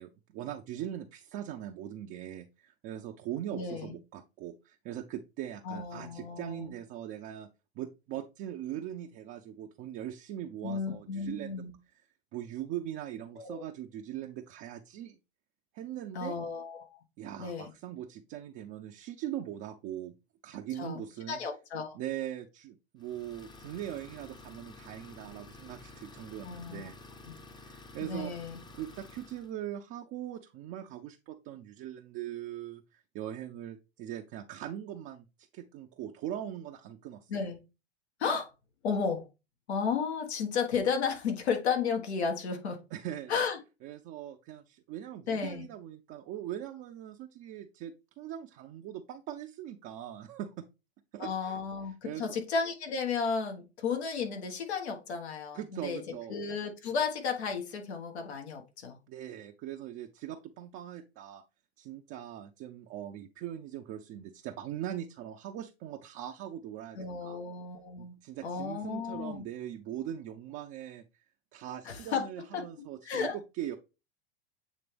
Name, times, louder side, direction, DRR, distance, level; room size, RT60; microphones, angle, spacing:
voice 1, 0.0-7.5 7.7-11.6 12.3-15.2 15.7-16.4 17.2-20.1 20.4-21.4 21.9-27.0 27.5-28.3 28.7-37.3 42.9-43.4 43.8-50.6 51.1-51.6 52.0-52.4 55.5-56.4 59.1-61.4 61.8-67.4 68.0-71.0 71.5-73.8, right 11 dB, 45° right, 2 dB, 0.7 m, -41 dB
voice 2, 3.5-4.0 5.7-6.8 10.6-11.7 13.4-13.6 16.1-17.0 17.4-17.7 20.8-22.0 26.4-26.9 28.0-28.6 37.3-37.6 38.2-38.5 38.8-39.3 39.7-42.8 43.3-43.6 45.3-45.7 51.2-56.0 56.3-59.0 67.0-68.2 68.4-69.4 71.9-72.3 72.5-72.6 73.1-73.4, left 5 dB, 80° left, 4 dB, 1.6 m, -33 dB
Idling, 23.0-29.5, left 3 dB, 15° left, 0.8 m, -51 dB
8.4 x 3.3 x 3.4 m, 0.28 s
hypercardioid pair, 105°, 32 cm